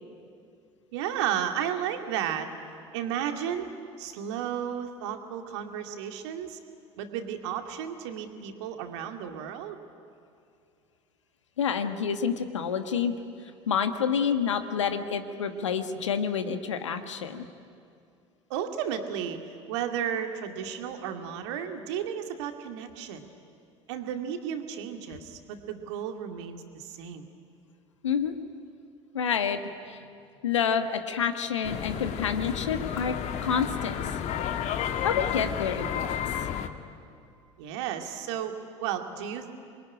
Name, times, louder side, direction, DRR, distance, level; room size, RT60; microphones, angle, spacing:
voice 1, 0.9-2.5 2.9-3.7 4.0-6.6 7.0-9.8 18.5-19.4 19.7-23.3 23.9-27.2 37.6-38.5 38.8-39.5, right 9 dB, 65° right, 5 dB, 2.3 m, -33 dB
voice 2, 11.6-13.1 13.7-17.5 28.0-28.3 29.1-30.0 30.4-33.2 33.4-34.1 35.0-36.2, left 7 dB, 80° left, 8 dB, 1.5 m, -28 dB
sound 1, 31.6-36.7, left 9 dB, 50° left, 1.7 m, -32 dB
26.5 x 22.5 x 9.9 m, 2.4 s
figure-of-eight pair, 65°, 15 cm